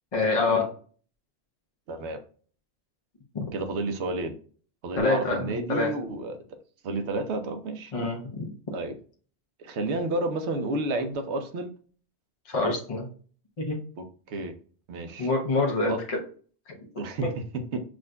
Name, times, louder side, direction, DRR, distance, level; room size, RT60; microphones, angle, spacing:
voice 1, 0.1-0.7 3.3-3.4 5.0-5.9 7.9-8.5 12.5-13.1 13.6-13.8 15.2-16.2, left 3 dB, 35° left, 0 dB, 0.8 m, -26 dB
voice 2, 1.9-2.2 3.5-4.4 4.8-6.4 6.8-7.9 8.7-9.0 9.6-11.7 14.0-14.5 14.9-15.3 15.9-16.0 17.0-17.3 17.7-17.8, right 2 dB, 80° right, 7 dB, 1.0 m, -30 dB
6.1 x 2.5 x 2.2 m, 0.43 s
omnidirectional pair, 1.1 m